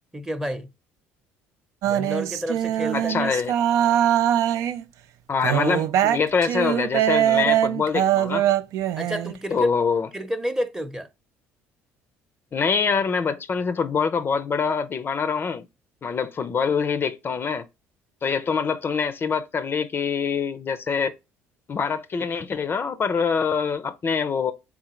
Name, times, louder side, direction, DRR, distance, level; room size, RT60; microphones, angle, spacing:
voice 1, 0.1-0.7 1.8-3.3 9.0-9.7 10.1-11.1, equal, 10° right, 0.8 m, -30 dB
sound 1, 1.8-4.8 5.4-9.3, right 11 dB, 65° right, 0.4 m, -22 dB
voice 2, 2.9-3.5 5.3-8.4 9.5-10.1 12.5-15.7 16.0-17.6 18.2-21.1 21.7-24.5, left 5 dB, 40° left, 0.5 m, -25 dB
3.7 x 3.7 x 2.9 m
hypercardioid pair, 65°, 6 cm